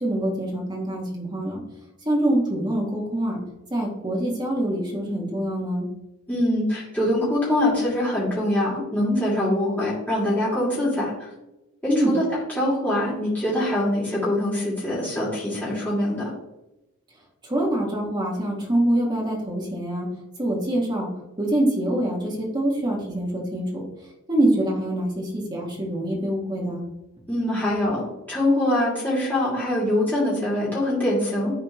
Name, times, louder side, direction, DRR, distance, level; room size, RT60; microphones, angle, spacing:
voice 1, 0.0-1.6 2.1-3.4 3.7-5.9 11.9-12.1 17.4-20.1 20.4-21.1 21.4-23.8 24.3-26.9, right 1 dB, 20° right, -3 dB, 1.9 m, -25 dB
voice 2, 6.3-11.1 11.8-12.2 12.6-16.3 27.3-28.0 28.3-31.5, left 1 dB, 10° left, -9 dB, 2.8 m, -23 dB
12.0 x 4.2 x 3.1 m, 0.94 s
head